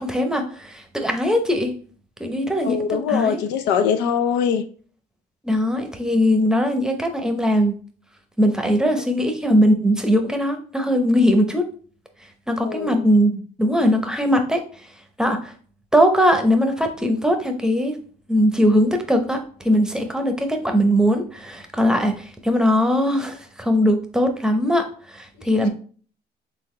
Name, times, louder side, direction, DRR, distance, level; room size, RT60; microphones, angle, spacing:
voice 1, 0.0-1.7 2.2-3.4 5.4-7.8 8.4-11.7 12.5-14.6 15.2-15.5 15.9-18.0 18.3-25.7, equal, 5° right, 5 dB, 0.7 m, -20 dB
voice 2, 2.6-4.6 12.6-13.0 25.6-25.7, left 7 dB, 90° left, 8 dB, 0.5 m, -22 dB
4.0 x 3.7 x 3.1 m, 0.43 s
cardioid pair, 110°, 17 cm